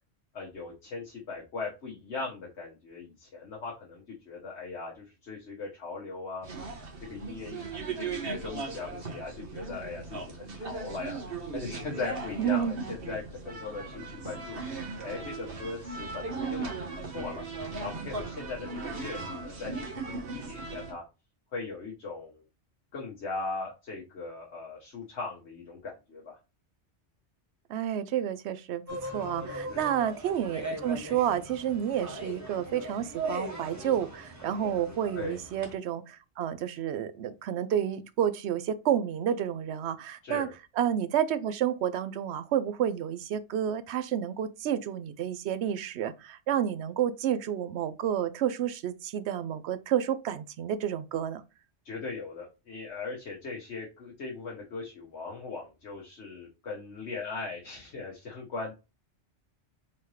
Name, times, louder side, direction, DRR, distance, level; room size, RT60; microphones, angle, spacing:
voice 1, 0.3-6.5 7.0-7.6 8.0-11.2 11.5-14.6 15.0-17.4 17.8-21.0 21.5-22.4 22.9-26.4 29.7-29.9 35.2-35.4 40.2-40.5 51.8-58.7, left 4 dB, 70° left, 1.4 m, -39 dB
sound 1, 6.4-20.9, right 4 dB, 55° right, 1.4 m, -38 dB
voice 2, 12.4-12.7 27.7-40.5 40.8-51.4, right 10 dB, 75° right, 0.8 m, -30 dB
sound 2, 28.9-35.7, right 1 dB, 15° right, 1.0 m, -39 dB
4.2 x 3.9 x 3.2 m
omnidirectional pair, 1.2 m